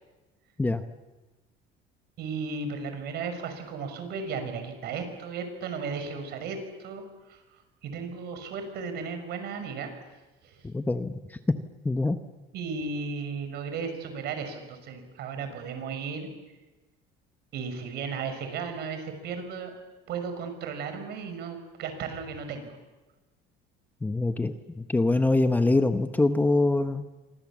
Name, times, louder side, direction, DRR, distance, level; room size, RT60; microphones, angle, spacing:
voice 1, 2.2-7.4 7.8-9.9 10.4-10.6 12.5-16.3 17.5-19.8 20.1-22.8, right 5 dB, 60° right, 7 dB, 5.9 m, -35 dB
voice 2, 10.6-11.4 11.8-12.2 24.0-27.0, left 2 dB, 10° left, 8 dB, 0.9 m, -24 dB
28.0 x 25.5 x 7.4 m, 1.1 s
cardioid pair, 160°, 20 cm